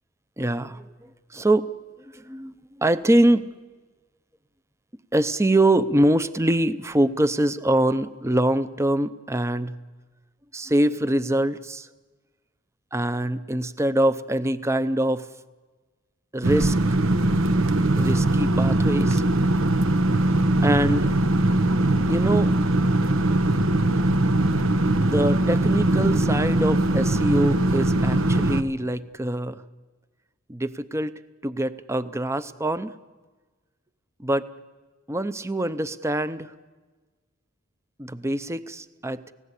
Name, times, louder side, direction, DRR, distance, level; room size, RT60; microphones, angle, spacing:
voice 1, 0.4-1.7 2.1-3.5 5.1-9.8 10.5-11.9 12.9-15.3 16.3-16.8 18.0-19.2 20.6-21.2 22.1-22.5 25.0-29.6 30.5-32.9 34.2-34.5 35.1-36.5 38.0-39.3, right 1 dB, 15° right, 13 dB, 0.7 m, -24 dB
sound 1, 16.4-28.6, right 1 dB, 75° right, 1.0 m, -21 dB
29.5 x 17.0 x 8.2 m, 1.3 s
head